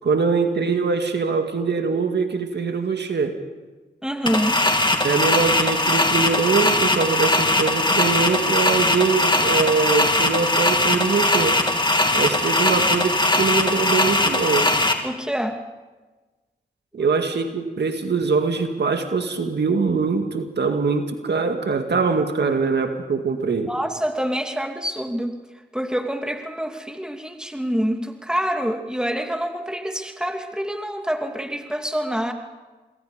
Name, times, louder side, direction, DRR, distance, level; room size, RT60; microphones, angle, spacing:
voice 1, 0.0-3.4 5.0-11.6 12.1-14.7 16.9-23.7, right 4 dB, 70° right, 6 dB, 2.1 m, -23 dB
voice 2, 4.0-4.6 5.0-5.1 15.0-15.6 17.0-17.1 23.7-25.4 25.7-32.3, equal, 5° right, 4 dB, 2.8 m, -26 dB
sound 1, 4.3-14.9, left 2 dB, 25° left, 2.7 m, -20 dB
26.5 x 22.0 x 5.2 m, 1.2 s
cardioid pair, 45°, 18 cm